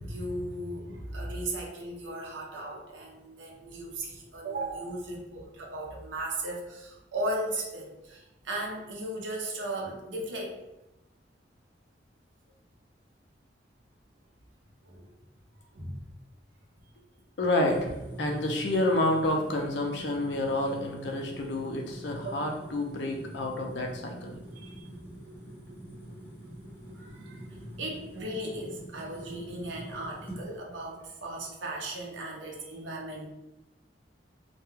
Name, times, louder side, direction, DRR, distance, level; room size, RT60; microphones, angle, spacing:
voice 1, 0.0-10.6 14.8-15.1 15.7-16.0 24.5-24.9 26.9-33.3, right 1 dB, 90° right, 0 dB, 0.6 m, -36 dB
voice 2, 17.4-17.9 18.2-24.3, left 1 dB, 70° left, 2 dB, 0.5 m, -29 dB
sound 1, 17.6-30.4, right 1 dB, 10° left, 0.6 m, -44 dB
2.2 x 2.2 x 3.1 m, 0.96 s
head